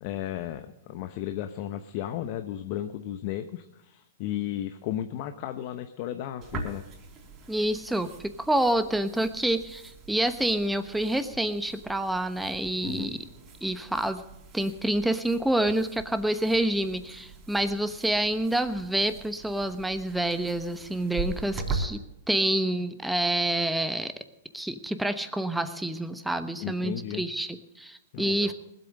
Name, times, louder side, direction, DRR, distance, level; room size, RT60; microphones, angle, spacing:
voice 1, 0.0-6.8 12.8-13.2 26.6-27.2 28.1-28.5, left 11 dB, 50° left, 9 dB, 0.8 m, -34 dB
sound 1, 6.4-21.9, right 3 dB, 25° right, 3.8 m, -41 dB
voice 2, 7.5-8.1 8.4-13.2 13.6-14.2 14.5-22.0 22.3-24.1 24.5-28.5, right 1 dB, 5° right, 10 dB, 1.0 m, -27 dB
19.5 x 8.1 x 6.5 m, 0.90 s
hypercardioid pair, 125°, 0 cm